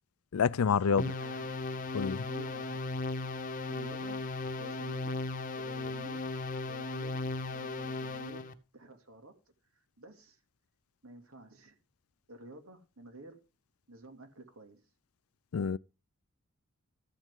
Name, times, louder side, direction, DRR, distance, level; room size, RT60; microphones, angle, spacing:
voice 1, 0.3-1.0 1.9-2.3 15.5-15.8, left 6 dB, 80° left, 0.4 m, -27 dB
voice 2, 0.8-1.6 2.2-2.8 3.7-4.2 4.5-5.2 5.6-6.2 6.6-7.2 7.5-8.4 8.7-9.3 10.0-10.4 11.0-11.8 12.3-13.4 13.9-14.8, right 2 dB, 80° right, 2.5 m, -50 dB
sound 1, 1.0-8.5, left 2 dB, 35° left, 0.9 m, -36 dB
13.5 x 9.1 x 3.7 m
head